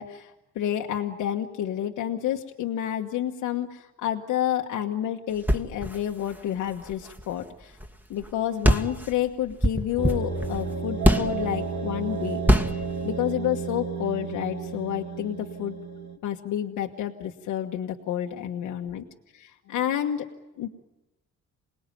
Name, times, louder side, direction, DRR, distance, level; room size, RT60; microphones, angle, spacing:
voice 1, 0.0-7.8 8.1-12.7 13.0-15.8 16.2-19.0 19.3-20.3 20.6-20.7, left 11 dB, 85° left, 2 dB, 1.4 m, -29 dB
sound 1, 5.4-7.9 8.2-8.3 8.6-11.5 12.4-12.9, equal, 5° right, 1.7 m, -24 dB
sound 2, 10.0-16.2, right 5 dB, 65° right, 2.5 m, -32 dB
28.0 x 19.5 x 9.1 m, 1.0 s
cardioid pair, 90°, 30 cm